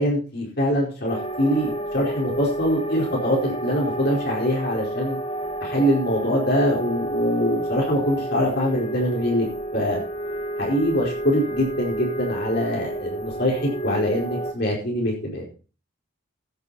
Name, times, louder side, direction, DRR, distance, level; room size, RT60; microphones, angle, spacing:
voice 1, 0.0-5.2 5.6-9.4 9.7-10.0 10.6-15.5, equal, 50° left, -2 dB, 4.7 m, -23 dB
sound 1, 1.1-14.5, right 1 dB, 30° left, 1.2 m, -30 dB
15.0 x 9.4 x 4.2 m, 0.36 s
head